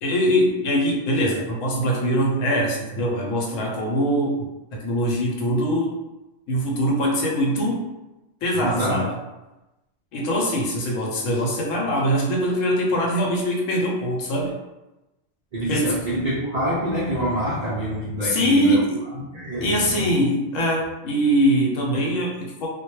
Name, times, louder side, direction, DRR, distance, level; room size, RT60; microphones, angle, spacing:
voice 1, 0.0-4.5 4.7-5.9 6.5-7.8 8.4-9.1 10.1-14.6 15.7-15.9 18.2-19.0 19.6-22.7, equal, 90° left, -1 dB, 1.0 m, -22 dB
voice 2, 8.5-9.1 15.5-18.8 19.1-20.2, equal, 85° right, -8 dB, 0.3 m, -26 dB
2.2 x 2.1 x 3.0 m, 1.0 s
omnidirectional pair, 1.3 m